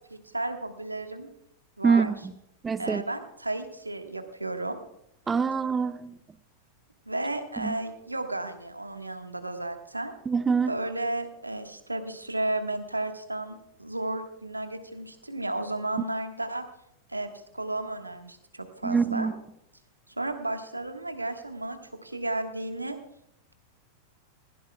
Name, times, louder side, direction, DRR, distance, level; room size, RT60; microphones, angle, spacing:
voice 1, 0.1-1.3 1.8-2.1 2.8-4.8 7.1-10.1 10.7-16.6 17.1-19.3 20.2-23.0, right 2 dB, 85° right, 1.5 m, -33 dB
voice 2, 1.8-2.2 2.6-3.0 5.3-6.2 7.6-7.7 10.3-10.7 18.8-19.3, right 5 dB, 15° right, 0.6 m, -25 dB
19.5 x 16.0 x 2.3 m
figure-of-eight pair, 90°, 0 cm